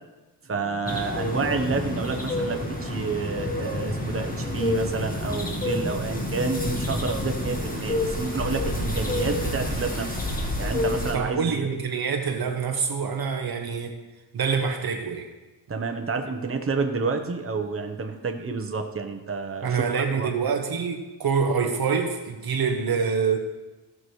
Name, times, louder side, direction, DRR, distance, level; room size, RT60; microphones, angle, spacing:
voice 1, 0.5-10.2 10.6-11.7 15.7-20.3, right 4 dB, 30° right, 4 dB, 1.1 m, -29 dB
sound 1, 0.8-11.1, left 1 dB, 20° left, 1.5 m, -28 dB
voice 2, 11.1-14.0 14.3-15.3 19.6-23.4, right 5 dB, 60° right, 4 dB, 1.0 m, -26 dB
16.5 x 6.1 x 3.2 m, 1.1 s
cardioid pair, 85°, 41 cm